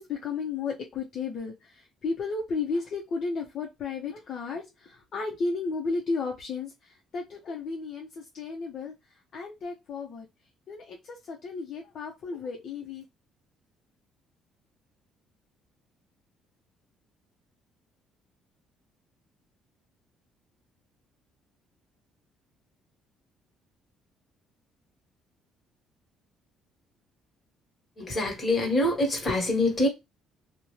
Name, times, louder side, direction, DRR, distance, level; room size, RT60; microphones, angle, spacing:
voice 1, 0.0-8.9 9.3-10.3 10.7-13.0, left 4 dB, 55° left, 0.6 m, -33 dB
voice 2, 28.0-29.9, left 1 dB, 30° left, 1.3 m, -25 dB
2.6 x 2.1 x 3.0 m
cardioid pair, 95°, 0 cm